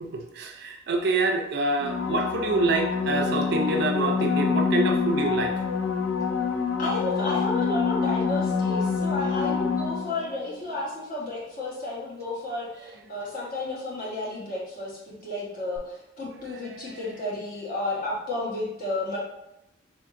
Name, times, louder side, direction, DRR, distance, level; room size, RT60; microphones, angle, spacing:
voice 1, 0.0-5.5 16.5-16.6, right 3 dB, 55° right, 3 dB, 0.4 m, -26 dB
sound 1, 1.8-10.4 15.8-15.9, left 5 dB, 70° left, 0.4 m, -26 dB
voice 2, 6.8-19.2, left 2 dB, 45° left, -5 dB, 1.1 m, -32 dB
3.6 x 3.6 x 2.5 m, 0.85 s
head